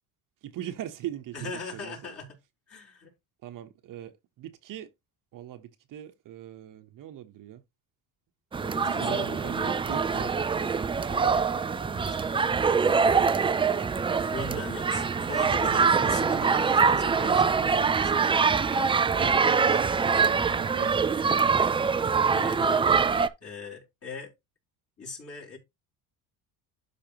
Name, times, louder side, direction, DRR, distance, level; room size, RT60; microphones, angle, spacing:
voice 1, 0.4-2.1 3.4-4.9 5.3-7.6 8.6-10.3 10.9-11.3 19.0-21.0, right 11 dB, 55° right, 1.1 m, -41 dB
voice 2, 1.3-2.4 2.7-3.1 8.6-10.3 11.1-11.4 11.8-12.2 14.3-18.2 22.3-23.1 23.4-24.3 25.0-25.6, left 3 dB, 35° left, 4.1 m, -40 dB
sound 1, 8.5-23.3, right 5 dB, 15° right, 0.4 m, -24 dB
12.0 x 4.9 x 2.9 m
cardioid pair, 125°, 38 cm